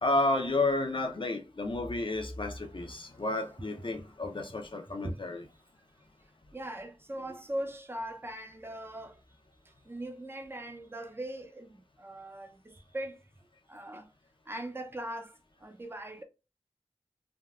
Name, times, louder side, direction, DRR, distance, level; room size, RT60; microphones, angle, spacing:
voice 1, 0.0-5.5, left 2 dB, 50° left, 0.6 m, -31 dB
voice 2, 6.5-9.2 9.6-13.3 13.7-14.1 14.5-16.2, right 1 dB, 20° right, 0.5 m, -40 dB
3.4 x 2.2 x 2.3 m
wide cardioid pair, 50°, 11 cm